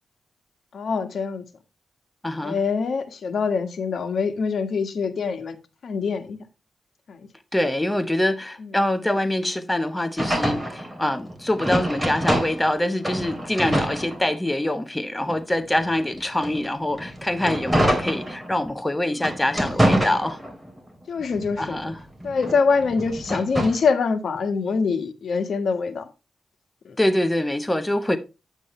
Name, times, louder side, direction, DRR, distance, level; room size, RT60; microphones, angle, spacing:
voice 1, 0.7-1.4 2.4-5.6 5.8-6.4 7.1-7.2 21.1-21.8 22.2-26.1 26.8-26.9, left 5 dB, 70° left, 1.4 m, -24 dB
voice 2, 2.2-2.6 7.5-20.4 21.6-22.0 27.0-28.2, left 1 dB, 10° left, 0.8 m, -24 dB
sound 1, 10.2-12.7 13.0-14.7 15.2-18.7 19.1-20.8 21.2-23.9, equal, 5° right, 3.0 m, -26 dB
9.4 x 8.1 x 3.1 m
cardioid pair, 100°, 0 cm